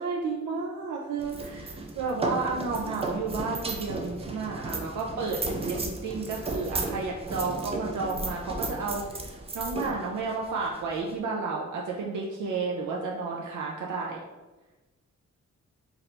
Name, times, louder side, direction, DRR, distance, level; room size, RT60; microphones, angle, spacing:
voice 1, 0.0-14.2, right 4 dB, 80° right, -2 dB, 0.6 m, -32 dB
sound 1, 1.2-11.2, right 2 dB, 20° right, 0.4 m, -34 dB
3.2 x 2.7 x 4.2 m, 1.1 s
wide cardioid pair, 145°, 30 cm